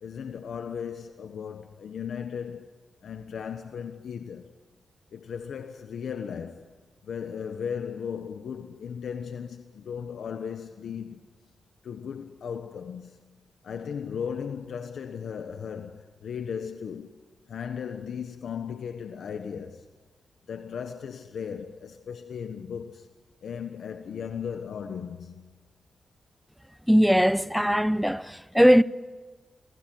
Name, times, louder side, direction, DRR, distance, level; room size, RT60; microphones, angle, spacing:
voice 1, 0.0-2.7 3.0-4.5 5.1-6.7 7.0-11.4 11.8-13.2 13.6-17.2 17.5-19.9 20.5-23.1 23.4-25.5, left 7 dB, 85° left, 1.3 m, -36 dB
voice 2, 26.9-28.8, equal, ahead, 0.9 m, -20 dB
29.0 x 20.5 x 9.4 m
cardioid pair, 70°, 0 cm